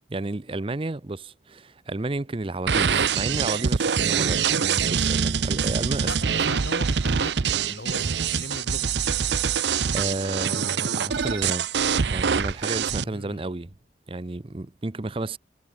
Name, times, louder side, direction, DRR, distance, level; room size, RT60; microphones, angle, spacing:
voice 1, 0.1-6.1 9.9-11.7 12.1-13.7 14.1-15.4, right 2 dB, 30° right, 0.6 m, -31 dB
sound 1, 2.7-13.0, right 6 dB, 75° right, 0.7 m, -24 dB
voice 2, 6.0-8.9 13.0-13.5, left 1 dB, 70° left, 6.6 m, -39 dB
head